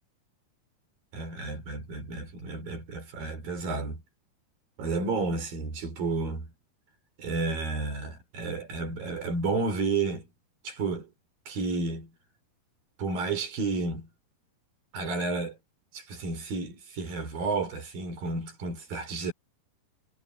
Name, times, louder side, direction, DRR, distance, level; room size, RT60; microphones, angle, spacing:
voice 1, 1.1-4.0 4.8-6.5 7.2-10.3 10.6-11.1 11.5-12.1 13.0-14.1 14.9-15.6 15.9-19.3, right 3 dB, 60° right, 6.0 m, -31 dB
omnidirectional pair, 4.7 m